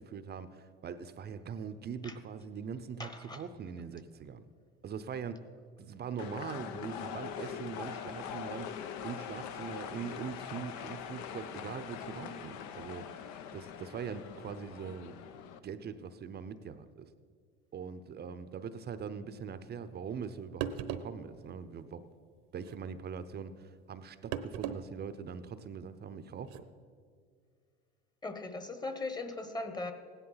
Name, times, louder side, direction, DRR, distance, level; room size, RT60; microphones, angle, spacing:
voice 1, 0.0-4.4 4.8-5.5 5.8-15.2 15.6-17.1 17.7-22.1 22.5-26.6, right 6 dB, 30° right, 12 dB, 0.7 m, -42 dB
voice 2, 3.0-3.4 28.2-29.9, left 2 dB, 15° left, 8 dB, 1.2 m, -39 dB
sound 1, 6.2-15.6, left 8 dB, 60° left, 0.9 m, -42 dB
sound 2, 20.2-20.3 20.6-21.2 22.6-22.8 24.3-24.8 25.2-25.3 26.4-26.6, right 9 dB, 60° right, 0.9 m, -37 dB
16.0 x 10.5 x 5.7 m, 2.2 s
supercardioid pair, 110°, 31 cm